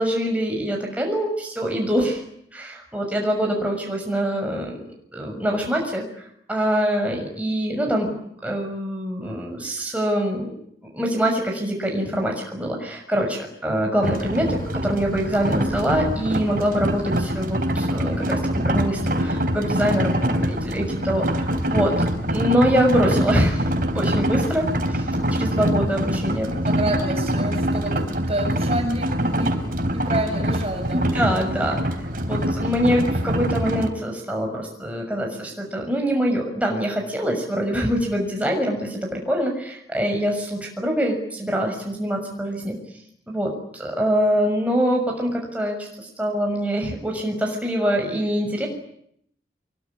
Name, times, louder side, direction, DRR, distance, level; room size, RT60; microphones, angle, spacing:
voice 1, 0.0-2.2 2.5-4.8 5.1-8.1 8.4-10.5 10.9-21.9 22.3-26.5 30.9-31.8 32.2-42.8 43.3-48.7, equal, 10° right, 1 dB, 6.6 m, -24 dB
sound 1, 14.0-33.9, equal, 50° right, 3.7 m, -24 dB
voice 2, 26.6-31.1, right 1 dB, 35° right, 5 dB, 7.1 m, -29 dB
26.0 x 23.5 x 9.9 m, 0.70 s
head